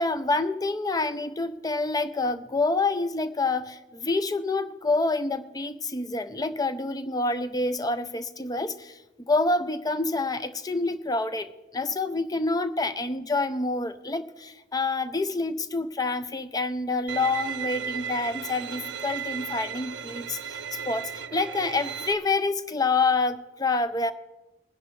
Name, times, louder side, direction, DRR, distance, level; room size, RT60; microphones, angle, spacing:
voice 1, 0.0-20.6 20.9-24.1, left 3 dB, 20° left, 11 dB, 0.5 m, -27 dB
Bowed string instrument, 17.1-22.1, right 8 dB, 75° right, 0.6 m, -35 dB
20.5 x 10.5 x 3.2 m, 1.1 s
head